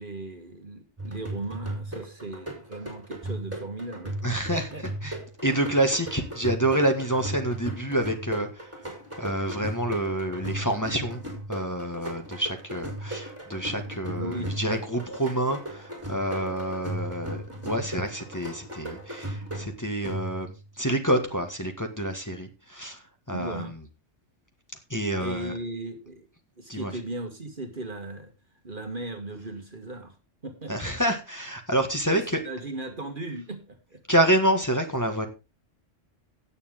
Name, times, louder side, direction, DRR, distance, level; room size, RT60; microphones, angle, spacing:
voice 1, 0.0-4.2 4.5-4.8 14.2-14.6 23.3-23.7 25.2-26.3 26.6-28.3 28.6-30.2 30.4-30.9 32.1-34.0, right 2 dB, 40° right, 1.8 m, -37 dB
sound 1, 1.0-20.6, right 1 dB, 10° right, 4.4 m, -37 dB
voice 2, 4.2-4.7 5.0-5.2 5.4-8.8 9.2-11.2 11.5-23.7 24.9-25.5 26.7-26.9 30.7-32.4 34.1-35.3, right 1 dB, 15° left, 1.8 m, -27 dB
17.0 x 7.2 x 3.7 m
omnidirectional pair, 1.3 m